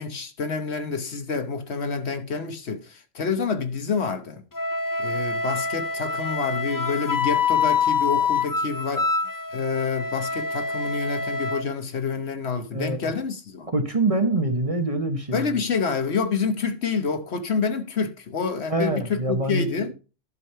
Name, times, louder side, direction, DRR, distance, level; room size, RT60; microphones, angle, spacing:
voice 1, 0.0-4.4 5.0-9.1 9.5-13.7 15.3-19.9, left 5 dB, 60° left, 1.2 m, -28 dB
Wind instrument woodwind instrument, 4.5-11.6, left 5 dB, 30° left, 0.4 m, -26 dB
voice 2, 12.7-13.0 13.7-15.6 18.7-19.9, right 2 dB, 30° right, 1.1 m, -25 dB
11.0 x 5.0 x 5.6 m
omnidirectional pair, 1.3 m